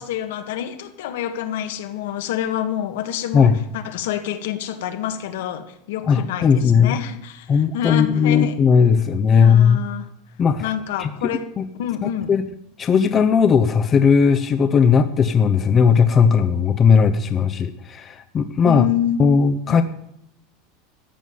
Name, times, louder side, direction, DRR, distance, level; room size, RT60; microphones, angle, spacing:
voice 1, 0.0-8.6 9.3-10.1 10.6-11.5 11.8-12.3 18.7-19.3 19.7-19.8, left 10 dB, 80° left, 7 dB, 1.7 m, -27 dB
voice 2, 6.1-7.0 7.5-9.8 10.4-10.7 11.0-11.7 12.0-12.4 12.8-18.8 19.2-19.8, left 6 dB, 20° left, 8 dB, 0.8 m, -17 dB
14.0 x 7.1 x 9.4 m, 0.74 s
supercardioid pair, 160°, 0 cm